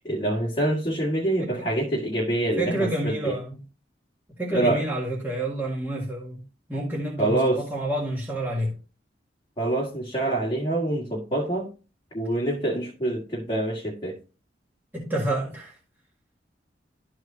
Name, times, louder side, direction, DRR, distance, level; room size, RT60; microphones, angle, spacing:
voice 1, 0.0-3.4 4.5-4.8 7.2-7.6 9.6-11.7 12.1-14.2, right 1 dB, 25° left, 1.7 m, -26 dB
voice 2, 2.6-3.6 4.4-6.4 6.7-8.7 14.9-15.7, right 1 dB, 10° right, 1.7 m, -28 dB
12.5 x 4.7 x 2.8 m
head